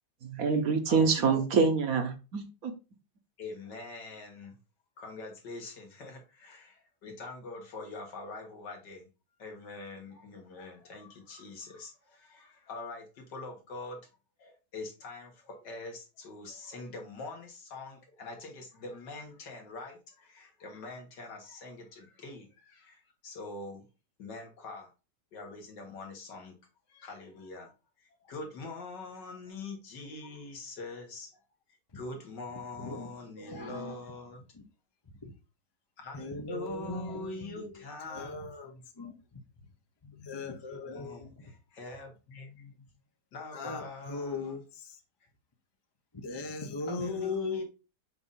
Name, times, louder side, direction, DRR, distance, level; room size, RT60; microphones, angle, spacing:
voice 1, 0.3-2.7, right 5 dB, 60° right, 1.3 m, -26 dB
voice 2, 3.4-4.6 5.0-9.1 9.4-14.0 14.4-23.9 24.2-24.9 25.3-26.6 26.9-27.7 28.0-31.4 31.9-34.4 36.0-38.8 40.0-42.9 43.3-44.6 46.8-47.6, left 3 dB, 80° left, 2.3 m, -44 dB
voice 3, 33.4-34.0 35.2-35.3 36.1-37.6 38.1-38.7 39.0-39.1 40.2-41.3 43.5-45.0 46.1-47.6, left 3 dB, 35° left, 0.4 m, -38 dB
6.8 x 2.7 x 5.6 m
omnidirectional pair, 1.8 m